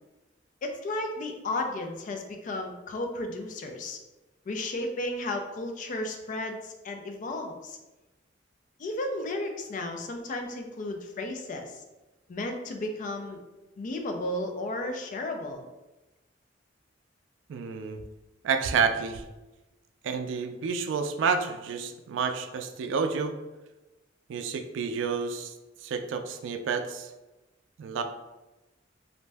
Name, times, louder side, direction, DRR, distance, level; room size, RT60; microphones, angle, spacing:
voice 1, 0.6-4.0 4.5-7.8 8.8-11.8 12.3-13.4 13.8-15.6, left 2 dB, 45° left, 4 dB, 0.3 m, -33 dB
voice 2, 17.5-18.0 18.4-19.2 20.0-23.4 24.3-25.5 25.8-27.1 27.8-28.0, right 5 dB, 80° right, 7 dB, 0.3 m, -29 dB
2.5 x 2.1 x 3.3 m, 1.1 s
head